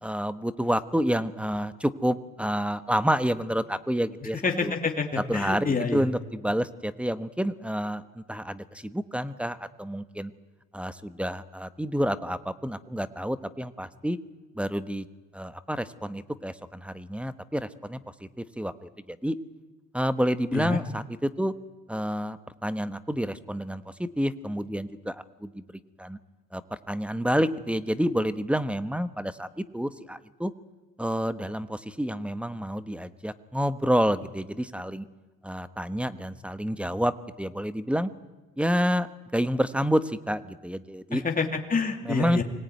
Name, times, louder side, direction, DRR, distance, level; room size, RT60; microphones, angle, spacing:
voice 1, 0.0-4.7 5.2-10.3 10.7-14.2 14.5-15.1 15.3-19.4 19.9-21.5 21.9-25.6 26.0-26.2 26.5-26.6 26.9-30.5 31.0-35.0 35.4-38.1 38.6-41.2 42.0-42.4, equal, 5° right, 12 dB, 1.1 m, -29 dB
voice 2, 4.4-6.0 20.5-20.8 41.1-42.4, left 4 dB, 30° left, 3 dB, 3.0 m, -27 dB
25.0 x 18.5 x 9.4 m, 1.3 s
cardioid pair, 90°, 30 cm